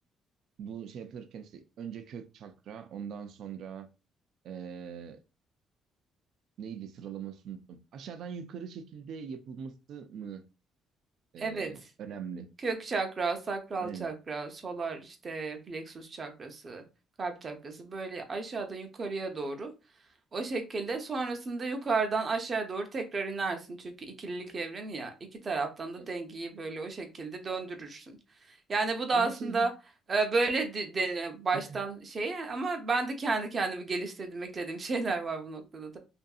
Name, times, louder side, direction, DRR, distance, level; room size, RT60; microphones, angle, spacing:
voice 1, 0.6-3.9 4.4-5.2 6.6-10.4 11.3-12.5 13.8-14.1 25.9-26.1 29.1-29.7 31.5-31.8, right 7 dB, 70° right, 0.4 m, -42 dB
voice 2, 11.4-11.7 12.6-16.8 17.2-19.7 20.3-25.1 25.4-28.1 28.5-29.7 30.1-36.0, right 3 dB, 40° right, 0.7 m, -33 dB
2.6 x 2.6 x 2.3 m
cardioid pair, 95°, 0 cm